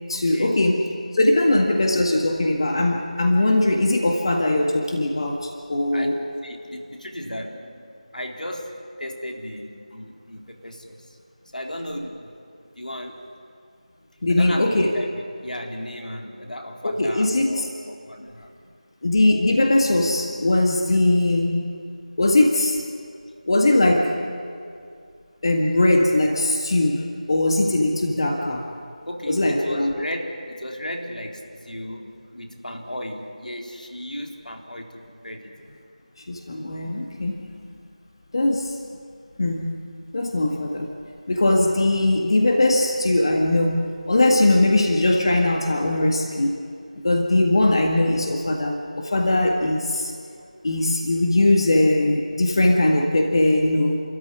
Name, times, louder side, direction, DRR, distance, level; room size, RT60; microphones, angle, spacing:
voice 1, 0.1-6.2 14.2-14.9 16.8-17.7 19.0-21.8 22.2-22.8 23.5-24.2 25.4-28.7 29.3-29.9 36.3-37.5 38.3-38.8 39.4-39.7 40.1-40.9 41.3-46.6 47.0-50.1 50.6-54.0, left 2 dB, 40° left, 1 dB, 1.8 m, -20 dB
voice 2, 5.9-7.8 8.1-11.2 11.5-12.5 12.8-13.2 14.3-15.1 15.4-18.5 27.6-27.7 29.0-34.9 35.2-35.5, left 1 dB, 80° left, 2 dB, 3.8 m, -35 dB
29.5 x 14.0 x 9.9 m, 2.4 s
figure-of-eight pair, 170°, 4 cm